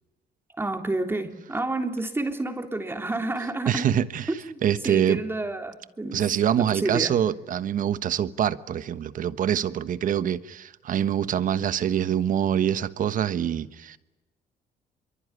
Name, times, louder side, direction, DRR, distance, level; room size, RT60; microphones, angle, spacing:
voice 1, 0.6-3.9 4.8-6.2 6.6-7.2, right 2 dB, 15° right, 3.5 m, -29 dB
voice 2, 3.7-4.3 4.6-5.2 6.1-14.0, right 9 dB, 50° right, 1.3 m, -25 dB
25.0 x 23.5 x 9.9 m
cardioid pair, 110°, 17 cm